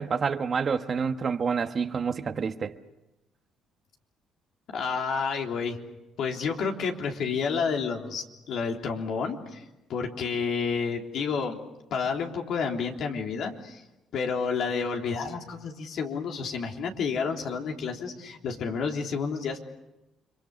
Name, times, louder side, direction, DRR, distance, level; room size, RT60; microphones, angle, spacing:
voice 1, 0.0-2.7, right 6 dB, 45° right, 1.3 m, -28 dB
voice 2, 4.7-5.8 6.2-9.6 9.9-11.6 11.9-13.8 14.1-19.6, left 5 dB, 70° left, 3.3 m, -30 dB
30.0 x 24.0 x 6.7 m
supercardioid pair, 70°, 0 cm